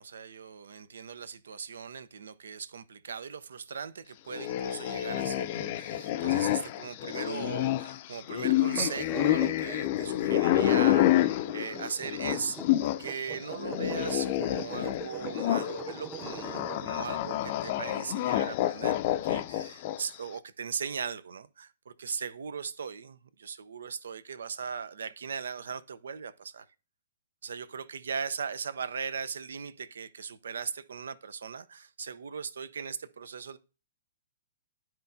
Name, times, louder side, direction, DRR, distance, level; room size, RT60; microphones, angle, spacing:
voice 1, 0.0-12.6 13.0-26.7 27.4-33.6, right 6 dB, 70° right, 0.5 m, -38 dB
sound 1, 4.3-13.1 13.4-20.2, left 13 dB, 45° left, 0.5 m, -28 dB
sound 2, 8.6-16.8, right 4 dB, 10° right, 0.7 m, -43 dB
12.0 x 4.4 x 2.6 m
figure-of-eight pair, 115°, 0 cm